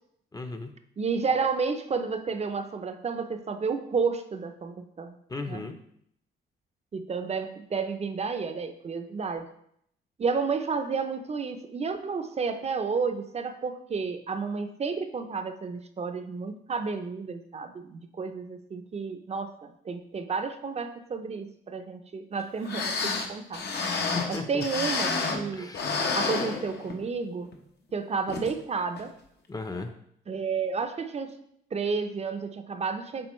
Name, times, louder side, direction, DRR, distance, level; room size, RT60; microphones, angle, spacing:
voice 1, 0.3-0.7 5.3-5.8 24.1-24.6 25.5-26.1 29.5-29.9, left 3 dB, 20° left, 7 dB, 0.7 m, -35 dB
voice 2, 1.0-5.2 5.5-5.7 6.9-9.4 10.2-23.6 24.3-25.7 26.1-27.5 27.9-29.1 30.3-31.3 31.7-33.3, right 5 dB, 30° right, 8 dB, 0.6 m, -31 dB
sound 1, 22.4-22.5 22.7-25.5 25.7-27.1 27.5-27.6 28.3-28.5 29.0-29.1, left 4 dB, 55° left, 0.9 m, -30 dB
7.7 x 4.0 x 3.1 m, 0.71 s
cardioid pair, 90°, 20 cm